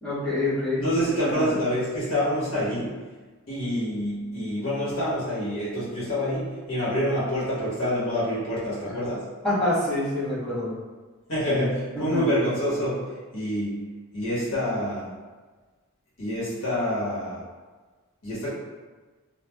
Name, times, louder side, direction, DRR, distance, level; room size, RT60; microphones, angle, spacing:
voice 1, 0.0-0.8 1.2-1.6 9.4-10.7 11.5-11.7 11.9-12.2, left 1 dB, 5° left, -14 dB, 1.3 m, -26 dB
voice 2, 0.7-3.0 3.5-9.3 11.3-13.9 14.1-15.1 16.2-17.4 18.2-18.5, equal, 75° left, -9 dB, 1.1 m, -27 dB
3.1 x 2.3 x 2.2 m, 1.3 s
head